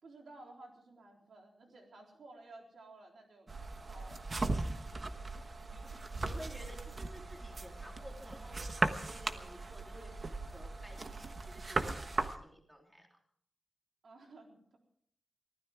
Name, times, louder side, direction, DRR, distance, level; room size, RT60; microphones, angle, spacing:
voice 1, 0.0-3.5 3.9-4.3 14.0-14.8, right 2 dB, 75° right, 0 dB, 3.9 m, -55 dB
sound 1, 3.5-12.4, right 3 dB, 40° right, 1.2 m, -38 dB
voice 2, 5.7-10.1 10.5-13.2, equal, 5° right, 0 dB, 3.5 m, -53 dB
24.0 x 16.0 x 3.6 m, 0.64 s
wide cardioid pair, 125°, 0 cm